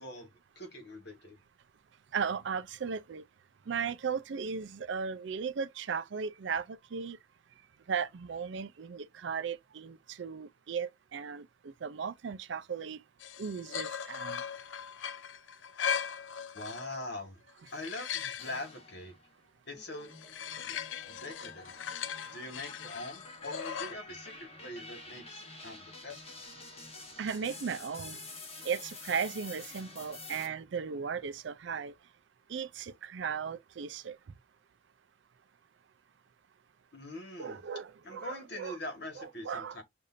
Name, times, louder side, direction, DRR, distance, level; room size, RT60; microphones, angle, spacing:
voice 1, 0.0-1.4 16.5-17.4 17.7-19.2 19.7-20.1 20.6-20.8 21.1-21.7 22.3-26.4 36.9-37.6 38.0-39.8, left 1 dB, 60° left, 1.5 m, -43 dB
voice 2, 2.1-3.2 3.7-7.2 7.9-13.0 13.4-14.4 27.2-28.2 28.6-31.9 32.5-34.2 37.4-38.8 39.2-39.8, right 6 dB, 70° right, 0.4 m, -36 dB
sound 1, 13.2-17.1 17.5-18.7 20.0-23.9, left 8 dB, 80° left, 0.5 m, -39 dB
sound 2, 18.4-19.3 19.7-30.5, left 3 dB, 30° left, 1.3 m, -48 dB
6.5 x 2.6 x 2.5 m
head